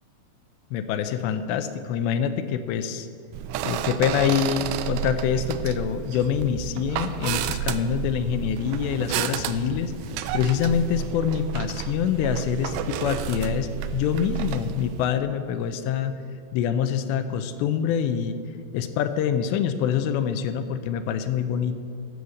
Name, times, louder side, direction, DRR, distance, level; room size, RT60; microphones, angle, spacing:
voice 1, 0.7-3.1 3.6-9.9 10.3-16.2 16.5-18.4 18.7-21.8, left 8 dB, 85° left, 10 dB, 2.8 m, -25 dB
sound 1, 3.3-15.1, right 11 dB, 85° right, 2.6 m, -31 dB
13.5 x 6.3 x 7.1 m, 2.4 s
omnidirectional pair, 5.0 m